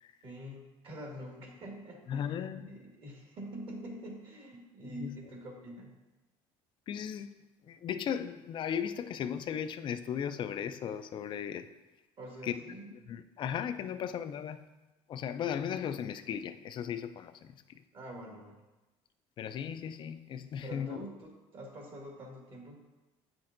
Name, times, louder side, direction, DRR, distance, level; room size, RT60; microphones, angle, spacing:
voice 1, 0.2-5.9 12.2-13.1 17.9-18.6 20.6-22.7, right 1 dB, 50° right, 1.7 m, -46 dB
voice 2, 2.1-2.7 4.8-5.1 6.9-7.4 7.7-11.7 12.4-12.6 12.9-14.6 15.1-17.8 19.4-21.0, left 8 dB, 45° left, 0.4 m, -36 dB
8.1 x 6.0 x 2.5 m
cardioid pair, 110°, 11 cm